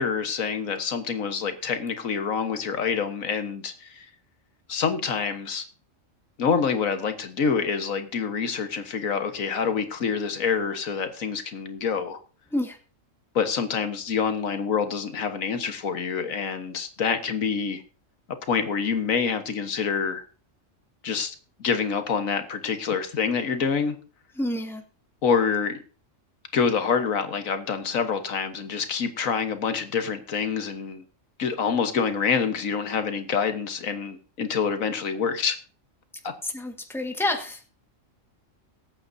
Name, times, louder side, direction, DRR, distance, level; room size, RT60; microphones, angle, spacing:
voice 1, 0.0-4.1 4.7-5.6 6.4-12.2 13.3-17.8 18.5-20.2 21.0-21.3 21.6-23.9 25.2-25.8 26.5-31.0 31.4-35.6 36.2-36.3, left 6 dB, 85° left, 8 dB, 1.7 m, -26 dB
voice 2, 24.4-24.8 36.4-37.6, left 1 dB, ahead, 4 dB, 1.5 m, -28 dB
22.0 x 8.6 x 2.7 m, 0.37 s
omnidirectional pair, 1.4 m